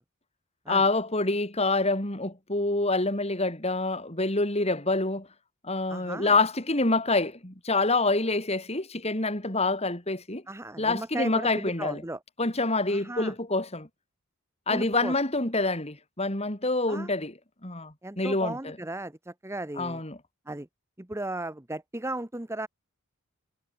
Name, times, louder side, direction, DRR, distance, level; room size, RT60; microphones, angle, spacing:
voice 1, 0.7-5.3 5.6-10.4 10.8-12.0 12.4-13.9 14.7-18.8 19.8-20.2, left 2 dB, 30° left, 3.8 m, -27 dB
voice 2, 5.9-6.3 10.5-12.2 12.9-13.3 14.7-15.1 16.9-17.1 18.0-20.0 20.5-20.7 21.0-22.7, right 2 dB, 10° right, 0.9 m, -36 dB
head